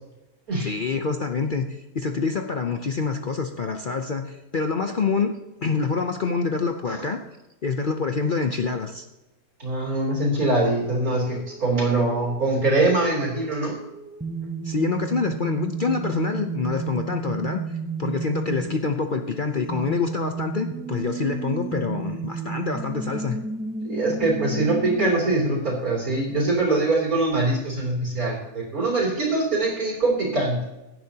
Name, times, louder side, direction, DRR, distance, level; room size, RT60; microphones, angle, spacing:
voice 1, 0.6-5.3 5.6-7.2 7.6-9.0 14.6-23.4, left 4 dB, 50° left, 6 dB, 0.7 m, -26 dB
voice 2, 9.6-13.7 23.9-30.6, right 2 dB, 70° right, -3 dB, 3.6 m, -23 dB
sound 1, 11.3-25.1, right 4 dB, 15° right, 0.3 m, -33 dB
17.0 x 10.5 x 2.8 m, 0.99 s
omnidirectional pair, 1.6 m